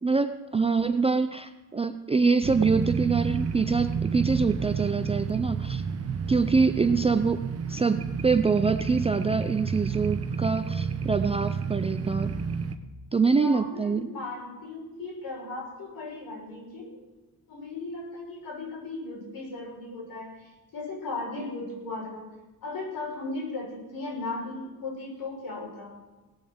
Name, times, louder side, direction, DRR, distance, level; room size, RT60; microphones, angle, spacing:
voice 1, 0.0-5.8 6.3-7.4 7.7-12.3 13.1-14.1, right 4 dB, 15° right, 8 dB, 0.4 m, -25 dB
sound 1, 2.4-12.8, right 6 dB, 40° right, 1.0 m, -30 dB
voice 2, 13.4-17.0 17.5-22.2 22.6-25.9, left 3 dB, 60° left, -3 dB, 6.4 m, -37 dB
18.0 x 7.2 x 7.9 m, 1.1 s
cardioid pair, 160°, 38 cm